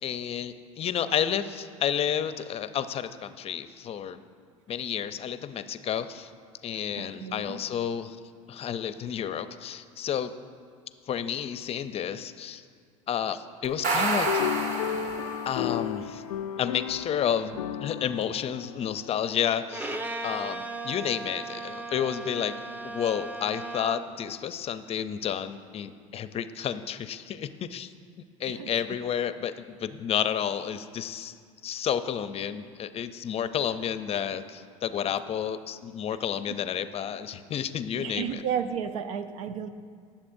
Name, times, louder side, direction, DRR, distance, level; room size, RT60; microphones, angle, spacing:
voice 1, 0.0-4.2 4.7-6.3 6.6-8.2 8.5-10.3 11.1-12.6 13.1-14.5 15.4-16.2 16.6-20.0 20.2-22.6 22.8-27.9 28.4-31.4 31.6-38.4, left 9 dB, 35° left, 12 dB, 0.6 m, -31 dB
voice 2, 7.0-7.6 28.5-28.7 36.5-36.6 38.0-39.7, right 8 dB, 80° right, 10 dB, 0.7 m, -33 dB
sound 1, 13.6-15.6, right 3 dB, 45° right, 1.5 m, -28 dB
sound 2, 14.3-19.8, left 10 dB, 85° left, 0.5 m, -33 dB
Bowed string instrument, 19.7-24.2, right 2 dB, 10° right, 0.7 m, -37 dB
19.5 x 7.2 x 2.7 m, 2.1 s
hypercardioid pair, 85°, 17 cm